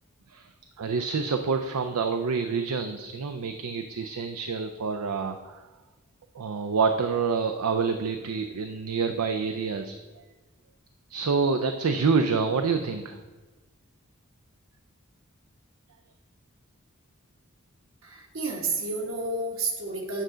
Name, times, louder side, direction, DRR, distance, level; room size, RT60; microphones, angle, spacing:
voice 1, 0.8-5.7 6.3-10.0 11.1-13.2, right 5 dB, 90° right, 7 dB, 0.5 m, -27 dB
voice 2, 18.0-20.2, right 3 dB, 65° right, 0 dB, 1.3 m, -30 dB
9.0 x 3.8 x 6.2 m, 1.2 s
head